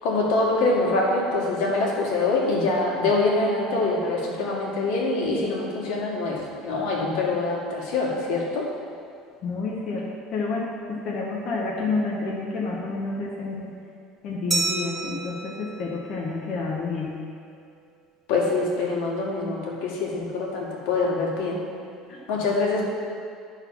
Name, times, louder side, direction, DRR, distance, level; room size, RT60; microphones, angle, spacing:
voice 1, 0.0-8.7 18.3-21.6 22.3-22.8, left 3 dB, 80° left, -3 dB, 1.9 m, -24 dB
voice 2, 9.4-13.7 14.2-17.2 22.1-22.2, left 3 dB, 35° left, -4 dB, 1.0 m, -29 dB
Glass, 14.5-17.0, right 3 dB, 10° right, 1.0 m, -31 dB
11.5 x 4.1 x 5.9 m, 2.3 s
cardioid pair, 175°, 0 cm